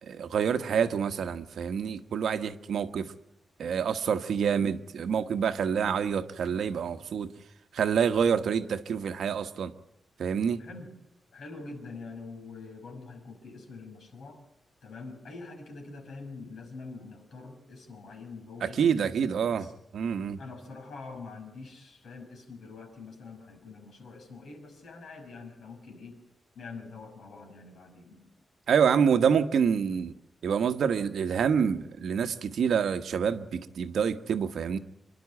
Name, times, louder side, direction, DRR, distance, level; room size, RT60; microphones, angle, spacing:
voice 1, 0.0-3.1 3.6-7.3 7.7-9.7 10.2-10.6 18.6-19.7 19.9-20.4 28.7-30.1 30.4-34.8, right 7 dB, 70° right, 1.2 m, -27 dB
voice 2, 4.1-4.6 8.3-8.5 10.6-10.9 11.3-14.4 14.8-19.7 20.4-26.2 26.5-28.3, left 3 dB, 70° left, 5.9 m, -45 dB
27.0 x 11.5 x 9.8 m
wide cardioid pair, 180°, 0 cm